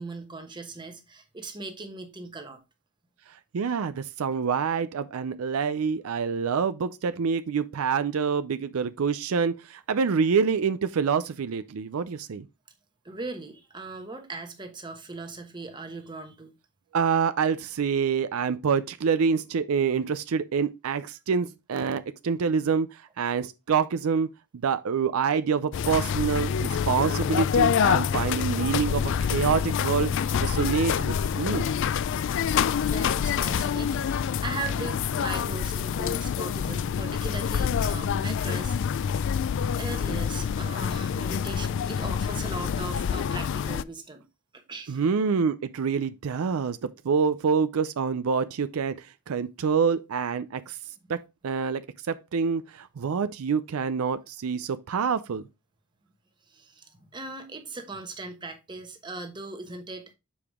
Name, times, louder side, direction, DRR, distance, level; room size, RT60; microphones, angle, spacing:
voice 1, 0.0-2.6 13.0-16.5 31.3-31.4 32.5-39.1 39.8-44.2 44.5-45.0 56.5-60.1, right 3 dB, 20° right, 1.1 m, -39 dB
voice 2, 3.5-12.5 16.9-31.7 44.9-50.8 51.1-55.4, right 6 dB, 75° right, 0.4 m, -26 dB
sound 1, 25.7-43.8, left 7 dB, 55° left, 0.3 m, -26 dB
Piano, 27.3-30.4 30.7-31.1, left 3 dB, 90° left, 1.3 m, -47 dB
7.0 x 4.8 x 3.5 m
head